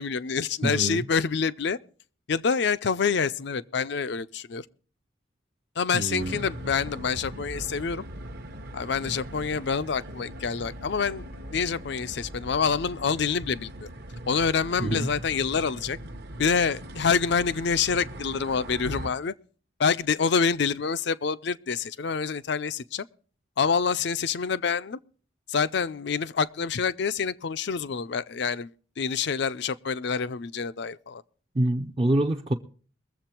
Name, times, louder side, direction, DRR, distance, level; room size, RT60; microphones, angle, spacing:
voice 1, 0.0-1.8 2.3-4.6 5.8-8.0 8.7-11.2 11.5-13.9 14.3-16.0 16.4-19.3 19.8-23.1 23.6-25.0 25.5-28.7 29.0-31.2, left 5 dB, 55° left, 0.5 m, -27 dB
voice 2, 0.6-1.0 5.9-6.3 14.8-15.1 31.6-32.5, right 1 dB, 25° right, 0.5 m, -25 dB
sound 1, 6.2-19.1, right 1 dB, 55° right, 0.9 m, -40 dB
22.0 x 7.6 x 4.4 m
head